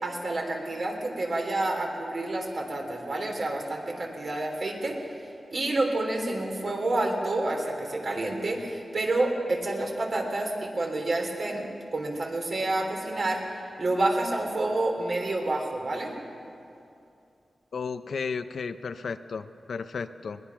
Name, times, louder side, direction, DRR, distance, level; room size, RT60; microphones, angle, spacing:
voice 1, 0.0-5.0 5.5-11.6 11.9-16.1, right 2 dB, 55° right, 1 dB, 3.5 m, -29 dB
voice 2, 17.7-20.4, left 5 dB, 75° left, 10 dB, 0.7 m, -34 dB
21.5 x 20.5 x 6.0 m, 2.6 s
wide cardioid pair, 125°, 0 cm